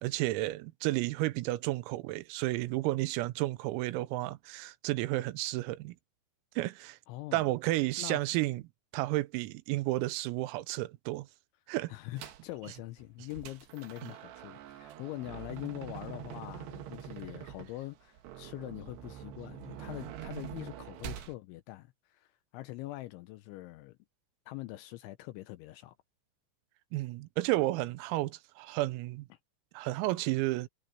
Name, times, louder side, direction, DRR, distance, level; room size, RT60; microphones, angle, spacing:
voice 1, 0.0-6.0 6.6-7.0 7.3-8.6 8.9-11.3 11.7-11.9 14.0-14.1 26.9-29.3 29.8-30.7, right 18 dB, 85° right, 3.6 m, -32 dB
voice 2, 7.1-7.5 8.0-8.2 11.9-24.0 24.5-26.0 29.3-29.4, left 18 dB, 80° left, 2.8 m, -43 dB
sound 1, 12.2-12.5 13.0-21.4, right 11 dB, 70° right, 3.0 m, -45 dB
omnidirectional pair, 6.0 m